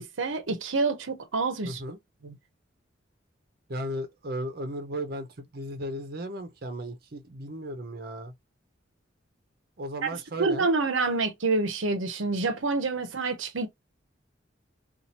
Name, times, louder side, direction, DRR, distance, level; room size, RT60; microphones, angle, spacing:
voice 1, 0.0-1.8 2.2-2.3 10.0-10.1 10.4-13.7, right 3 dB, 85° right, 0.8 m, -27 dB
voice 2, 1.6-2.0 3.7-8.3 9.8-10.7, right 1 dB, 50° right, 0.7 m, -35 dB
2.9 x 2.5 x 4.1 m
head